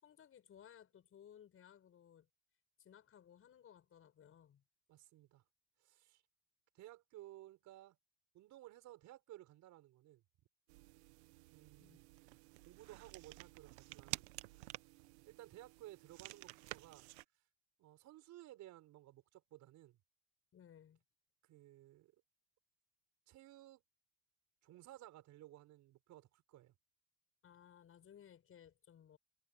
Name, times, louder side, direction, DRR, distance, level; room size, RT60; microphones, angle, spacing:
voice 1, 0.0-2.3 2.8-4.6 11.8-12.0 20.5-21.0 27.4-29.2, left 9 dB, 40° left, 6.2 m, -61 dB
voice 2, 4.9-5.4 5.8-6.2 6.7-8.0 8.3-10.2 11.5-12.1 12.6-14.2 15.2-17.1 17.8-20.0 21.4-22.1 23.3-23.8 24.6-26.7, right 15 dB, 60° right, 6.6 m, -57 dB
sound 1, 10.7-17.2, right 20 dB, 90° right, 1.2 m, -51 dB
supercardioid pair, 95°, 32 cm